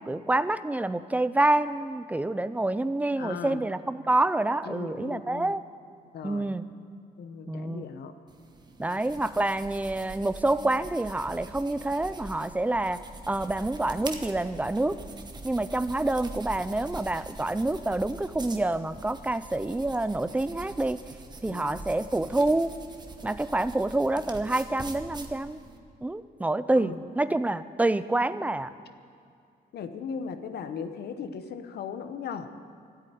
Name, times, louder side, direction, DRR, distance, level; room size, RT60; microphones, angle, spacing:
voice 1, 0.0-5.6 6.2-6.6 7.5-7.9 8.8-15.0 15.4-21.0 21.4-22.7 23.2-25.6 26.0-28.7, right 2 dB, 10° right, 14 dB, 0.4 m, -27 dB
voice 2, 3.2-3.6 4.6-5.5 6.1-6.5 7.2-8.1 8.9-9.0 21.4-21.8 26.8-27.0 29.7-32.5, left 6 dB, 75° left, 9 dB, 0.9 m, -38 dB
sound 1, 8.3-25.8, right 2 dB, 25° right, 1.0 m, -44 dB
13.0 x 8.5 x 9.2 m, 2.4 s
cardioid pair, 135°, 17 cm